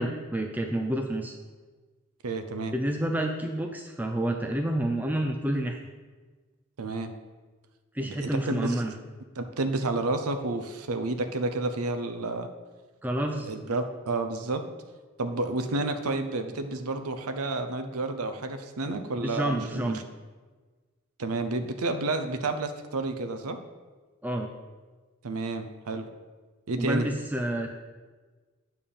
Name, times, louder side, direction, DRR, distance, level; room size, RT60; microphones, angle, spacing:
voice 1, 0.0-1.3 2.7-5.8 7.9-8.9 13.0-13.5 19.2-20.0 24.2-24.5 26.8-27.7, right 1 dB, 10° right, 3 dB, 0.4 m, -29 dB
voice 2, 2.2-2.7 6.8-7.1 8.0-8.8 9.4-12.5 13.5-14.6 15.2-20.0 21.2-23.6 25.2-26.1 26.7-27.1, right 2 dB, 85° right, 8 dB, 0.7 m, -30 dB
9.2 x 3.5 x 6.8 m, 1.4 s
head